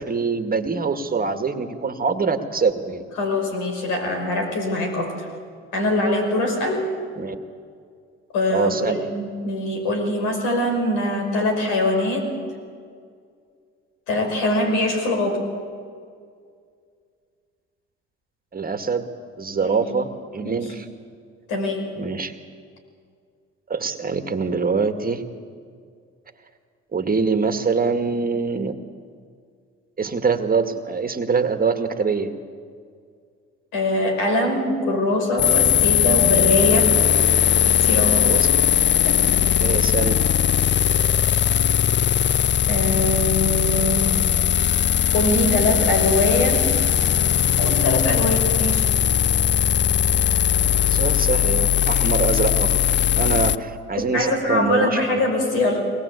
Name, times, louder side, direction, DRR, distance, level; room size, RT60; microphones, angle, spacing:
voice 1, 0.0-3.0 7.2-7.4 8.5-9.0 18.5-19.1 19.4-20.9 22.0-22.4 23.7-25.2 26.9-28.7 30.0-32.3 38.2-38.6 39.6-40.2 50.9-52.8 53.1-55.2, right 5 dB, 30° right, 8 dB, 1.9 m, -24 dB
voice 2, 3.2-5.3 5.7-6.9 8.3-12.3 14.1-15.5 19.6-19.9 20.4-20.7 21.5-21.9 33.7-37.0 37.6-38.4 39.0-39.2 42.7-44.2 45.1-46.7 47.6-48.9 54.0-55.8, left 1 dB, 75° left, 3 dB, 5.5 m, -23 dB
sound 1, 35.4-53.6, left 9 dB, 35° left, 0.6 m, -19 dB
22.5 x 20.0 x 8.3 m, 2.2 s
hypercardioid pair, 70°, 30 cm